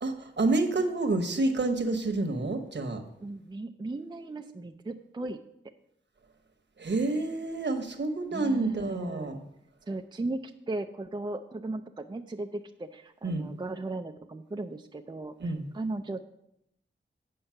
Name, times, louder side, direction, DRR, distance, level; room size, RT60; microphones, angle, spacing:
voice 1, 0.0-3.0 6.8-9.4 13.2-13.5 15.4-15.6, right 2 dB, 60° right, 6 dB, 1.1 m, -28 dB
voice 2, 3.2-5.4 8.3-9.4 9.9-16.2, right 2 dB, 20° right, 5 dB, 0.4 m, -37 dB
8.8 x 5.4 x 5.7 m, 0.78 s
wide cardioid pair, 85°, 21 cm